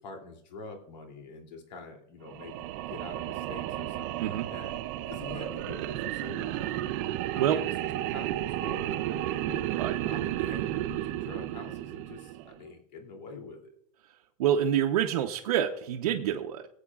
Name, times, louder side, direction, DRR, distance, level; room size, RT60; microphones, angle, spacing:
voice 1, 0.0-4.7 5.1-6.8 7.3-9.7 10.0-13.8, left 4 dB, 85° left, 3 dB, 2.9 m, -45 dB
sound 1, 2.3-12.6, right 14 dB, 25° right, 0.3 m, -33 dB
voice 2, 14.4-16.7, right 10 dB, 65° right, 1 dB, 0.9 m, -27 dB
22.5 x 8.5 x 2.4 m, 0.71 s
supercardioid pair, 175°, 21 cm